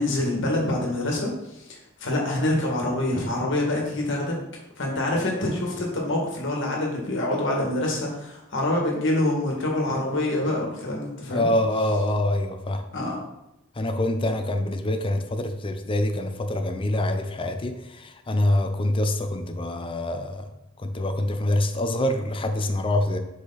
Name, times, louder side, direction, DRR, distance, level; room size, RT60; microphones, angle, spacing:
voice 1, 0.0-4.3 4.8-11.5 12.9-13.2, left 1 dB, 60° left, -1 dB, 1.7 m, -26 dB
voice 2, 11.3-12.8 13.8-20.5 20.8-23.2, left 1 dB, 25° left, 6 dB, 0.6 m, -25 dB
6.3 x 5.0 x 4.0 m, 0.90 s
head